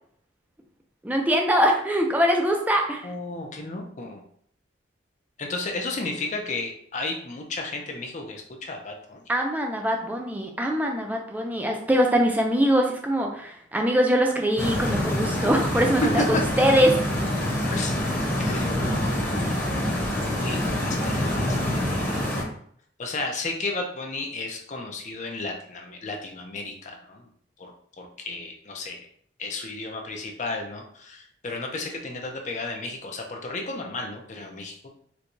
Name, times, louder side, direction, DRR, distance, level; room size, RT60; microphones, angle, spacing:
voice 1, 1.0-3.1 9.3-16.9, equal, 10° right, 2 dB, 0.4 m, -23 dB
voice 2, 3.0-4.2 5.4-9.2 16.0-16.4 17.7-18.1 18.4-19.6 20.4-22.2 23.0-27.3 27.6-29.0 29.4-34.9, left 2 dB, 40° left, 2 dB, 0.5 m, -33 dB
Stream, 14.6-22.4, left 1 dB, 10° left, 0.9 m, -26 dB
4.4 x 2.3 x 2.6 m, 0.63 s
head